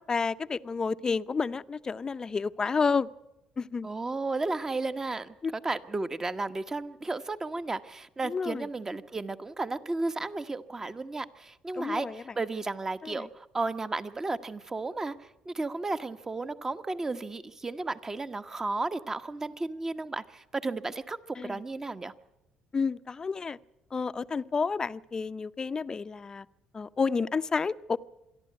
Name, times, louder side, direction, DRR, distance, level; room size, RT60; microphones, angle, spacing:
voice 1, 0.1-3.1 3.6-3.9 5.4-5.5 8.2-8.7 11.8-12.2 13.0-13.3 21.4-21.6 22.7-23.6 23.9-26.4 26.7-28.0, left 5 dB, 35° left, 13 dB, 0.6 m, -30 dB
voice 2, 3.8-15.1 15.5-21.2 21.4-22.1, right 3 dB, 25° right, 11 dB, 1.1 m, -33 dB
26.5 x 11.5 x 9.4 m, 0.92 s
supercardioid pair, 80°, 2 cm